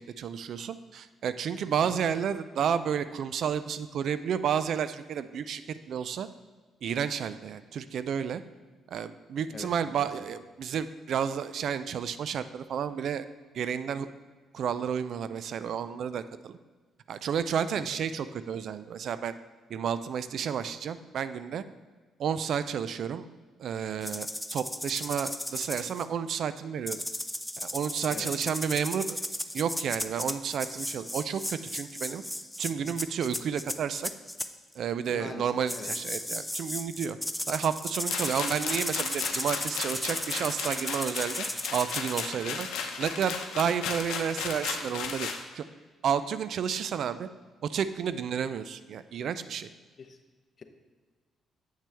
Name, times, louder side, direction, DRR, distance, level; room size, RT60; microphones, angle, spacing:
voice 1, 0.2-6.3 6.8-8.4 8.9-13.3 13.5-14.1 14.5-16.6 17.1-19.4 19.7-21.6 22.2-23.3 23.6-27.0 27.6-29.2 29.5-32.2 32.6-34.1 34.8-37.2 37.5-41.5 41.7-42.7 43.0-45.3 45.5-45.6 46.0-47.3 47.6-49.7, right 8 dB, 65° right, 13 dB, 0.3 m, -31 dB
voice 2, 9.5-10.1 17.7-18.0 28.1-28.3 32.8-33.0 35.1-35.9 50.0-50.2 50.6-50.7, left 5 dB, 45° left, 7 dB, 0.8 m, -44 dB
sound 1, 24.0-26.0 26.9-34.5 35.7-42.2, left 1 dB, 5° left, 0.4 m, -35 dB
sound 2, 38.1-45.4, left 6 dB, 90° left, 0.7 m, -35 dB
8.2 x 6.1 x 3.4 m, 1.4 s
cardioid pair, 90°, 0 cm